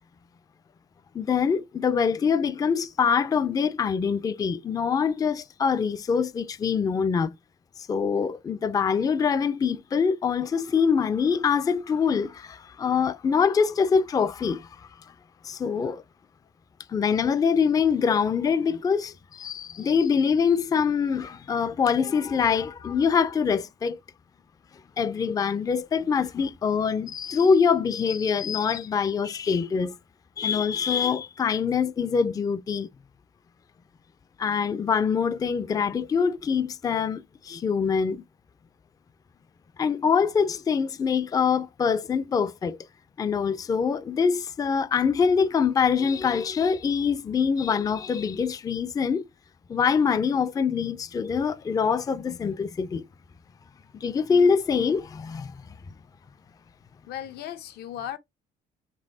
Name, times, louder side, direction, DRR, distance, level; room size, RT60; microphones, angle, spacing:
voice 1, 1.1-7.3 7.8-14.9 15.4-16.0 16.9-24.0 25.0-30.0 30.4-32.9 34.4-38.2 39.8-42.8 43.2-49.2 49.7-53.0 54.0-55.6, left 6 dB, 20° left, 0.4 m, -24 dB
voice 2, 57.1-58.2, left 10 dB, 70° left, 0.8 m, -36 dB
5.3 x 3.0 x 2.7 m
cardioid pair, 110°, 17 cm